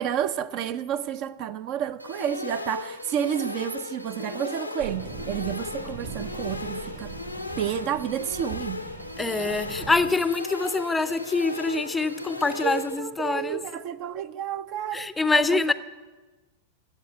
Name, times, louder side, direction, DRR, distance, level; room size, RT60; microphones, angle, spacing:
voice 1, 0.0-7.2 7.6-8.8 12.6-15.7, right 9 dB, 40° right, 0.5 m, -30 dB
sound 1, 2.0-13.0, left 3 dB, 90° left, 0.7 m, -36 dB
sound 2, 4.8-10.1, right 5 dB, 65° right, 2.5 m, -40 dB
voice 2, 9.2-13.6 14.9-15.7, left 3 dB, 10° left, 0.5 m, -25 dB
12.0 x 7.8 x 9.2 m
figure-of-eight pair, 90°, 0 cm